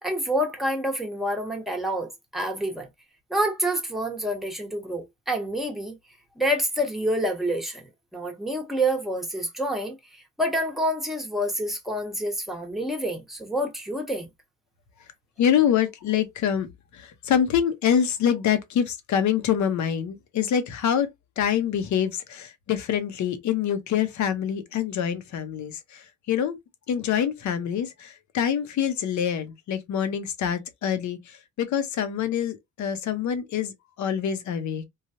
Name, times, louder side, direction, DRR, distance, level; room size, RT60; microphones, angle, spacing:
voice 1, 0.0-2.9 3.3-6.0 6.4-14.3, equal, ahead, 1.0 m, -28 dB
voice 2, 15.4-16.7 16.9-21.1 21.4-26.6 26.9-34.8, left 8 dB, 70° left, 0.8 m, -25 dB
3.1 x 2.3 x 2.7 m
cardioid pair, 90°, 30 cm